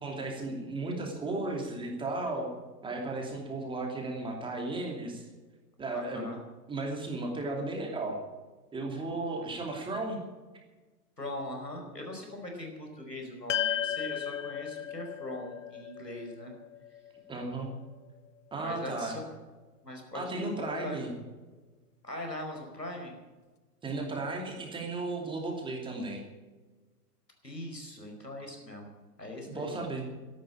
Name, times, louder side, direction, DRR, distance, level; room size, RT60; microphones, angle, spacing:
voice 1, 0.0-2.5 2.8-5.2 5.8-6.3 6.7-8.2 8.7-10.2 17.3-17.7 18.5-19.2 20.1-21.1 23.8-26.2 29.5-30.1, right 2 dB, 10° right, 1 dB, 2.7 m, -35 dB
voice 2, 5.9-6.4 11.2-16.5 18.6-19.2 19.8-21.0 22.0-23.2 27.4-28.9 29.2-29.8, left 1 dB, 85° left, 2 dB, 5.1 m, -40 dB
sound 1, 13.5-18.0, left 10 dB, 50° left, 0.9 m, -35 dB
13.5 x 11.5 x 8.6 m, 1.3 s
figure-of-eight pair, 115°, 48 cm